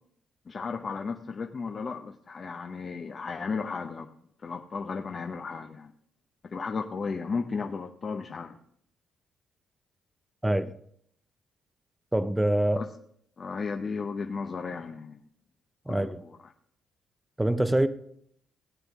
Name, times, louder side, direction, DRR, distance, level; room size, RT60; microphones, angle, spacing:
voice 1, 0.5-4.1 4.4-5.9 6.4-8.6 12.8-12.9 13.4-15.2 15.9-16.1, left 5 dB, 40° left, 0.7 m, -34 dB
voice 2, 12.1-12.9 15.9-16.2 17.4-17.9, right 1 dB, 10° right, 0.6 m, -25 dB
16.5 x 8.1 x 3.6 m
cardioid pair, 90°, 0 cm